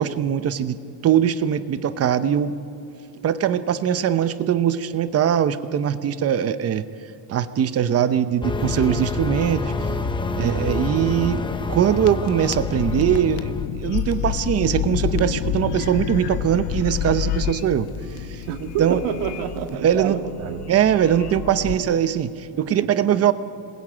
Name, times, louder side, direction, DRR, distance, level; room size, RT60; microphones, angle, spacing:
voice 1, 0.0-2.6 3.2-6.8 7.3-9.7 10.4-11.4 11.7-13.5 13.8-17.9 18.2-18.4 18.8-19.0 19.8-20.2 20.7-23.3, right 9 dB, 35° right, 12 dB, 0.8 m, -21 dB
sound 1, 8.4-13.7, left 3 dB, 10° left, 0.7 m, -27 dB
voice 2, 10.4-10.8 18.5-20.7 21.6-21.7 22.7-22.9, right 9 dB, 80° right, 6 dB, 2.2 m, -28 dB
sound 2, 11.9-21.7, left 10 dB, 60° left, 1.2 m, -29 dB
27.0 x 20.5 x 8.8 m, 2.6 s
cardioid pair, 160°, 45 cm